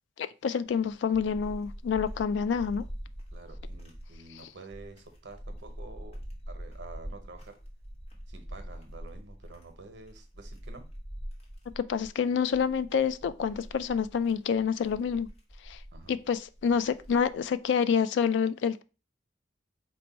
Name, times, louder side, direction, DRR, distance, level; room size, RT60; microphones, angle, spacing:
voice 1, 0.2-2.9 11.8-15.3 15.6-15.8 16.1-18.8, left 6 dB, 80° left, 0.3 m, -28 dB
sound 1, 0.7-17.5, equal, 35° left, 0.9 m, -44 dB
voice 2, 3.3-6.2 6.5-7.5 8.3-10.8 15.9-16.2, right 3 dB, 80° right, 0.8 m, -48 dB
4.3 x 2.2 x 4.0 m
head